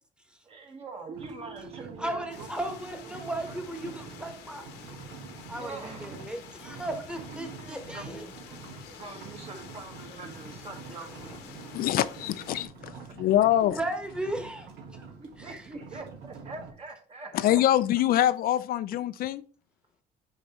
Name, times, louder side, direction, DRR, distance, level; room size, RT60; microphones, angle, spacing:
voice 1, 0.4-2.5 3.0-3.3 3.8-4.2 5.5-6.4 7.3-11.6 11.9-12.7 12.9-13.5 15.2-17.6, right 3 dB, 35° right, 1.5 m, -45 dB
sound 1, 1.1-6.6, right 5 dB, 60° right, 2.2 m, -50 dB
sound 2, 1.1-16.7, right 5 dB, 85° right, 1.4 m, -46 dB
voice 2, 2.0-4.6 5.5-8.2 13.6-15.1 15.5-15.6, right 1 dB, 5° right, 1.2 m, -35 dB
sound 3, 2.3-12.7, left 7 dB, 85° left, 1.1 m, -49 dB
voice 3, 11.7-12.9 13.2-13.8 17.3-19.4, left 12 dB, 60° left, 0.4 m, -24 dB
6.3 x 5.1 x 3.0 m
cardioid pair, 110°, 17 cm